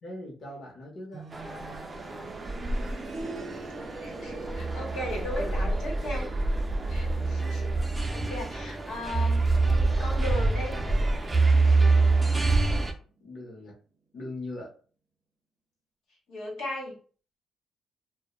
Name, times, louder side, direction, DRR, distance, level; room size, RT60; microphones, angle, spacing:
voice 1, 0.0-1.2 5.1-5.8 7.1-7.5 13.2-13.8 14.1-14.7, left 2 dB, 55° left, -1 dB, 0.8 m, -41 dB
sound 1, 1.1-11.9 12.2-12.3 13.2-13.3, right 3 dB, 50° right, 0.7 m, -44 dB
sound 2, 1.3-12.9, right 3 dB, 25° right, 0.4 m, -26 dB
voice 2, 4.0-6.3 6.9-7.7 8.1-9.5 10.0-10.8 16.3-17.0, left 1 dB, 90° left, -3 dB, 0.9 m, -36 dB
2.1 x 2.1 x 3.0 m, 0.41 s
cardioid pair, 90°, 0 cm